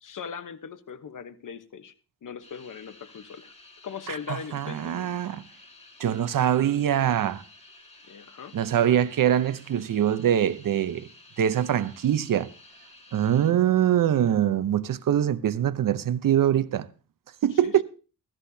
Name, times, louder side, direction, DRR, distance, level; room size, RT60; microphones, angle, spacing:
voice 1, 0.0-1.9 2.2-3.5 3.8-5.1 8.1-8.5 17.5-17.8, left 7 dB, 65° left, 1.0 m, -40 dB
sound 1, 2.4-13.5, left 2 dB, 20° left, 2.4 m, -52 dB
voice 2, 4.1-5.4 6.0-7.4 8.5-11.1 11.4-12.5 13.1-16.9 17.4-17.8, right 10 dB, 70° right, 0.7 m, -23 dB
15.0 x 13.0 x 2.7 m
wide cardioid pair, 100°, 34 cm